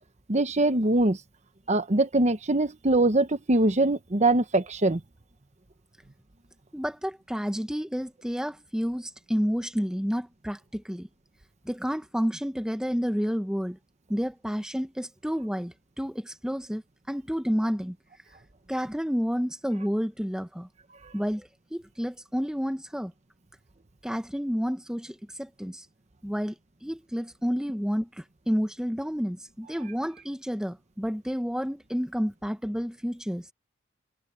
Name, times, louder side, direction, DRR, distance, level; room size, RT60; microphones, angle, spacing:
voice 1, 0.3-1.2 1.7-5.0, right 2 dB, 35° right, 1.1 m, -23 dB
voice 2, 6.7-11.1 11.6-13.8 14.1-16.8 17.1-18.0 18.7-20.7 21.1-23.1 24.0-25.8 26.2-26.5 26.8-33.4, equal, 5° right, 1.2 m, -30 dB
head